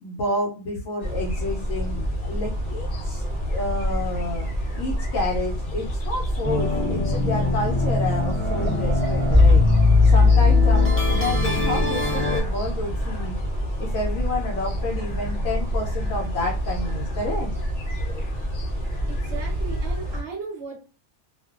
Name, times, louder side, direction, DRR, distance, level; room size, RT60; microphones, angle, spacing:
voice 1, 0.0-3.2 3.5-4.5 4.8-9.6 10.0-13.4 13.8-17.5 18.0-18.2 18.9-19.4, left 2 dB, 70° left, 0 dB, 0.9 m, -30 dB
sound 1, 1.0-20.2, equal, 45° left, 0.7 m, -27 dB
sound 2, 6.4-12.4, left 3 dB, 20° left, 0.4 m, -19 dB
voice 2, 19.0-20.8, right 5 dB, 55° right, -1 dB, 0.9 m, -36 dB
2.4 x 2.2 x 2.4 m, 0.35 s
omnidirectional pair, 1.5 m